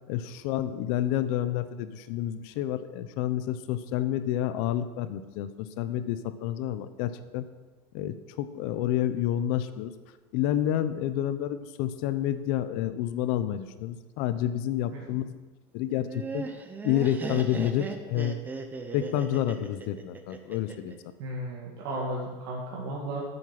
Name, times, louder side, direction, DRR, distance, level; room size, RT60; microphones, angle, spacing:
voice 1, 0.1-7.4 7.9-9.9 10.3-15.4 15.7-16.4 16.8-18.4 18.9-20.9, left 11 dB, 60° left, 12 dB, 0.8 m, -29 dB
Laughter, 15.9-20.9, right 4 dB, 15° right, 0.7 m, -37 dB
voice 2, 21.2-23.2, right 1 dB, 70° right, -5 dB, 2.3 m, -34 dB
9.3 x 8.1 x 6.0 m, 1.3 s
cardioid pair, 160°, 13 cm